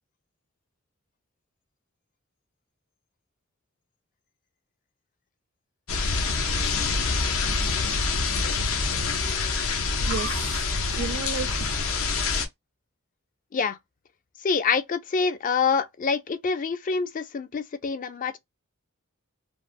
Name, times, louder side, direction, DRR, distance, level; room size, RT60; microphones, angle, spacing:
sound 1, 5.9-12.5, left 4 dB, 75° left, 0.6 m, -26 dB
voice 1, 9.0-11.7, right 5 dB, 65° right, 0.5 m, -35 dB
voice 2, 14.4-18.4, left 5 dB, 40° left, 0.4 m, -26 dB
3.2 x 2.0 x 2.5 m
head